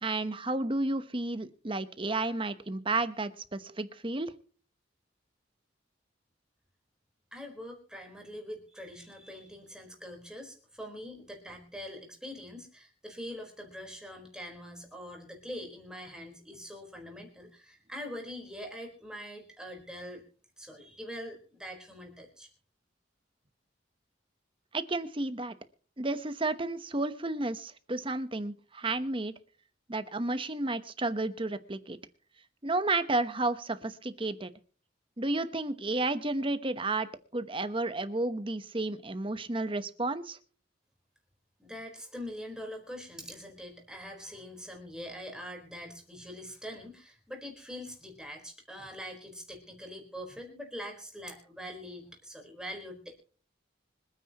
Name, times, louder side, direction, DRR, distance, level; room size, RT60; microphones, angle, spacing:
voice 1, 0.0-4.3 24.7-25.5 26.0-29.3 29.9-32.0 32.6-34.5 35.2-40.4, right 2 dB, 25° right, 11 dB, 1.0 m, -32 dB
voice 2, 7.3-20.2 20.6-22.5 41.6-53.2, equal, 5° right, 1 dB, 4.3 m, -43 dB
25.5 x 9.6 x 3.0 m, 0.42 s
head